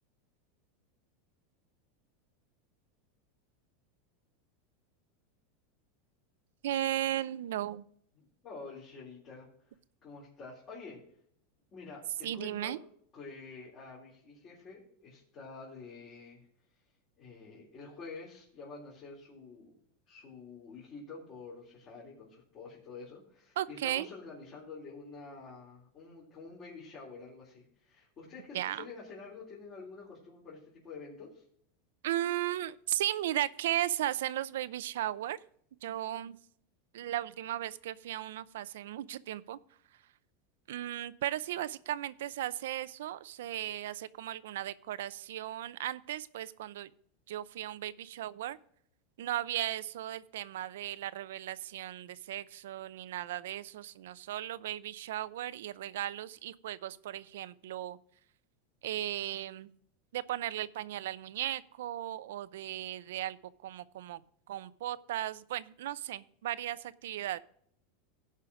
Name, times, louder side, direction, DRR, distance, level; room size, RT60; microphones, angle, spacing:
voice 1, 6.6-7.8 12.2-12.8 23.6-24.1 28.5-28.8 32.0-35.4 35.8-36.4 36.9-39.6 40.7-46.9 47.3-48.6 49.2-58.0 58.8-59.7 60.1-63.4 63.6-64.2 64.5-67.4, right 13 dB, 85° right, 16 dB, 0.5 m, -36 dB
voice 2, 8.1-9.8 10.0-11.0 11.7-12.8 13.1-16.8 17.2-19.8 20.1-31.4, left 4 dB, 35° left, -6 dB, 3.7 m, -48 dB
16.5 x 5.6 x 4.8 m, 0.64 s
supercardioid pair, 140°, 0 cm